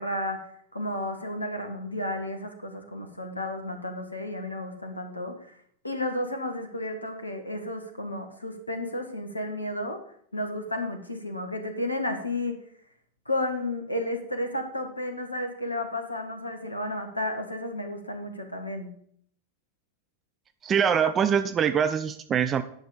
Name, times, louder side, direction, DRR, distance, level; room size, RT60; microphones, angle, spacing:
voice 1, 0.0-5.5 5.8-10.0 10.3-12.6 13.2-18.9, left 1 dB, 85° left, 5 dB, 1.3 m, -32 dB
voice 2, 20.6-22.6, right 7 dB, 25° right, 11 dB, 0.5 m, -23 dB
9.6 x 6.4 x 5.0 m, 0.65 s
figure-of-eight pair, 90°, 0 cm